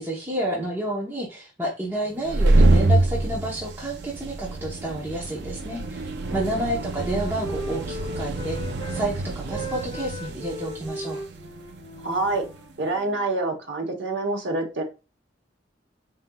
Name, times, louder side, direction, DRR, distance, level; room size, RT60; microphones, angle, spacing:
voice 1, 0.0-8.6 8.9-11.2, right 1 dB, 10° right, -4 dB, 0.8 m, -30 dB
sound 1, 2.1-12.6, right 2 dB, 65° right, 0.5 m, -25 dB
Wind instrument woodwind instrument, 5.7-9.0 9.4-13.3, left 1 dB, 25° left, 1.1 m, -38 dB
voice 2, 12.0-12.4 12.8-14.8, right 2 dB, 80° right, 1 dB, 1.0 m, -27 dB
4.3 x 3.7 x 2.2 m, 0.30 s
head